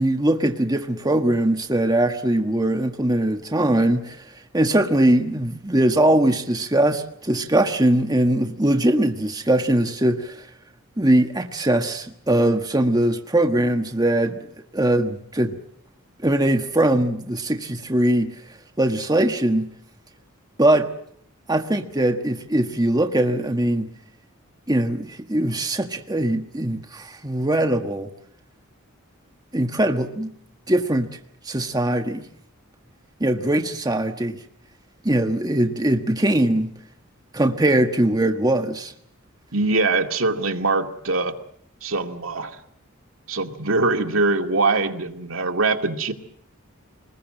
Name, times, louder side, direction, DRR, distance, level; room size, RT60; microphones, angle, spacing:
voice 1, 0.0-10.5 11.0-14.5 14.7-15.6 16.2-18.4 18.8-19.7 20.6-20.9 21.5-23.9 24.7-28.1 29.5-30.3 30.7-31.1 31.4-32.3 33.2-34.4 35.0-36.7 37.3-38.9, right 1 dB, 20° right, 1.3 m, -21 dB
voice 2, 39.5-41.3 41.8-42.6 43.3-46.1, right 3 dB, 70° right, 2.3 m, -22 dB
26.5 x 21.0 x 7.7 m
head